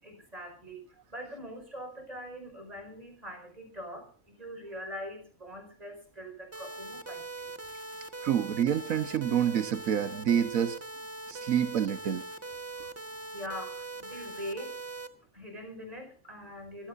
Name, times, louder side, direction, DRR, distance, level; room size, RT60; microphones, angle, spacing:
voice 1, 0.0-0.8 1.1-7.5 12.7-12.9 13.3-14.8 15.3-16.9, equal, 30° right, 5 dB, 5.1 m, -43 dB
sound 1, 6.5-15.1, right 3 dB, 10° right, 1.1 m, -41 dB
voice 2, 8.2-10.8 11.3-12.2, right 9 dB, 85° right, 9 dB, 1.4 m, -27 dB
24.0 x 16.5 x 2.6 m, 0.40 s
omnidirectional pair, 1.4 m